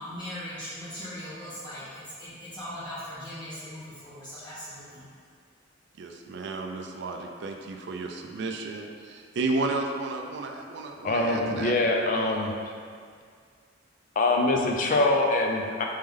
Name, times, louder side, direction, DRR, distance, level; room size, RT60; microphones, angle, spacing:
voice 1, 0.0-5.0, equal, 20° left, -13 dB, 1.3 m, -39 dB
voice 2, 6.0-11.7 12.2-12.5, right 3 dB, 55° right, 2 dB, 0.3 m, -33 dB
voice 3, 11.0-12.5 14.2-15.8, left 2 dB, 40° left, 1 dB, 0.4 m, -24 dB
3.4 x 3.1 x 3.6 m, 2.1 s
head